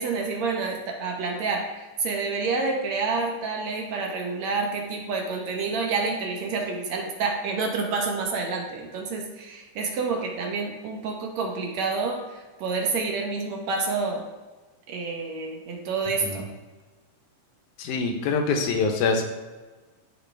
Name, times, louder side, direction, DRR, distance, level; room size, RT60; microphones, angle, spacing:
voice 1, 0.0-14.2 14.9-16.4, right 4 dB, 65° right, 1 dB, 2.1 m, -28 dB
voice 2, 17.8-19.2, left 4 dB, 75° left, 4 dB, 2.3 m, -24 dB
13.5 x 4.8 x 3.4 m, 1.3 s
omnidirectional pair, 3.8 m